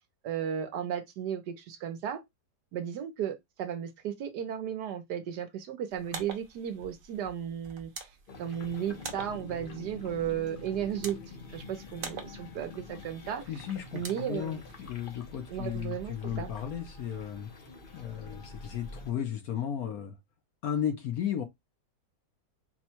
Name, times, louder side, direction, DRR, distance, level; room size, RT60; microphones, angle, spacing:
voice 1, 0.2-2.2 2.7-8.1 8.4-11.2 11.5-13.4 13.9-14.6 15.5-16.5, right 9 dB, 70° right, 1.3 m, -35 dB
sound 1, 5.9-14.9, right 4 dB, 45° right, 0.7 m, -47 dB
sound 2, 8.3-19.1, left 3 dB, 45° left, 0.7 m, -46 dB
voice 2, 13.5-17.5 17.9-20.1 20.6-21.4, left 9 dB, 65° left, 1.0 m, -34 dB
4.3 x 2.2 x 4.3 m
omnidirectional pair, 2.0 m